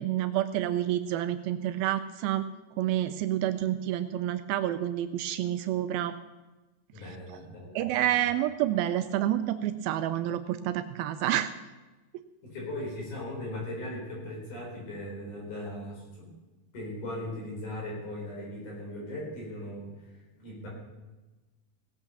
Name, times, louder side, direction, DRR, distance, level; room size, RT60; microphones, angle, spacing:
voice 1, 0.0-2.5 2.8-6.2 7.8-11.5, right 12 dB, 80° right, 11 dB, 2.3 m, -28 dB
voice 2, 6.9-8.2 12.4-16.3 16.7-19.9 20.4-20.7, left 1 dB, 55° left, -3 dB, 5.7 m, -38 dB
18.0 x 8.2 x 6.9 m, 1.2 s
omnidirectional pair, 4.4 m